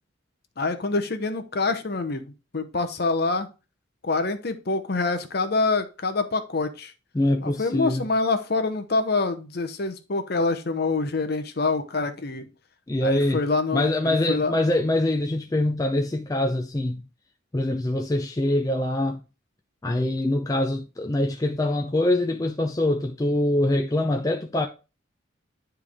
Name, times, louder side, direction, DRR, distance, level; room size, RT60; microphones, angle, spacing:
voice 1, 0.6-2.3 2.5-3.5 4.0-6.9 7.4-12.4 13.0-14.6, left 3 dB, 50° left, 0.8 m, -26 dB
voice 2, 7.1-8.1 12.9-13.4 13.7-17.0 17.5-19.2 19.8-24.7, left 1 dB, 15° left, 0.5 m, -24 dB
9.7 x 3.4 x 3.5 m
head